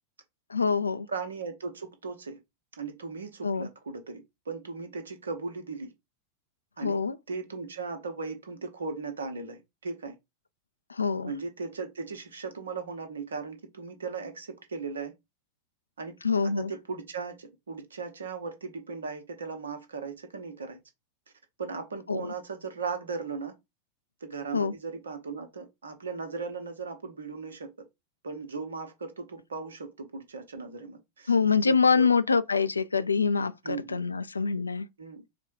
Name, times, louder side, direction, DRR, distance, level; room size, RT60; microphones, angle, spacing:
voice 1, 0.5-1.1 3.4-3.7 6.8-7.2 10.9-11.3 16.2-16.7 22.1-22.3 24.5-24.7 31.3-34.9, left 5 dB, 80° left, 0.3 m, -25 dB
voice 2, 1.1-2.4 2.8-5.9 6.8-7.0 7.3-10.1 11.2-15.1 16.0-16.2 16.4-20.8 21.6-23.5 24.2-27.7 28.2-31.3 31.6-32.1 33.6-34.0 35.0-35.2, right 4 dB, 70° right, 1.0 m, -37 dB
4.1 x 2.2 x 4.5 m
figure-of-eight pair, 90°, 0 cm